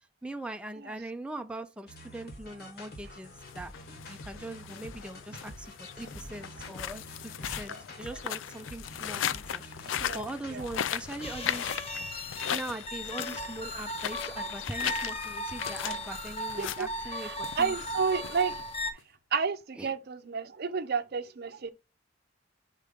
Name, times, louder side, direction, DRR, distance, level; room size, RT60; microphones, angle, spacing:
voice 1, 0.2-3.7 4.1-7.0 7.4-9.8 10.1-11.9 12.5-17.3 17.6-17.7 19.7-19.9, right 1 dB, 5° right, 0.4 m, -41 dB
sound 1, 1.9-11.4, left 1 dB, 55° left, 1.6 m, -47 dB
sound 2, 3.3-19.0, left 10 dB, 80° left, 0.4 m, -38 dB
voice 2, 9.8-10.7 16.6-18.6 19.3-21.7, right 5 dB, 55° right, 0.6 m, -32 dB
sound 3, 11.2-18.9, left 1 dB, 30° left, 0.8 m, -37 dB
5.0 x 4.5 x 5.0 m
head